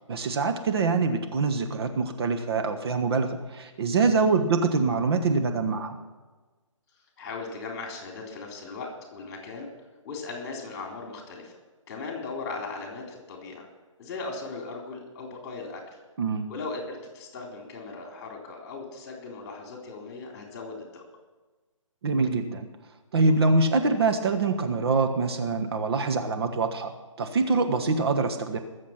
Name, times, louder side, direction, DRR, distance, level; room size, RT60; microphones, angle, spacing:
voice 1, 0.1-6.0 16.2-16.4 22.0-22.7 23.1-26.9 27.2-28.6, right 3 dB, 50° right, 5 dB, 1.3 m, -24 dB
voice 2, 7.2-9.7 10.0-11.6 11.9-13.7 14.0-15.8 16.5-21.0, left 3 dB, 30° left, 1 dB, 3.6 m, -38 dB
21.0 x 7.4 x 6.0 m, 1.3 s
figure-of-eight pair, 145°, 17 cm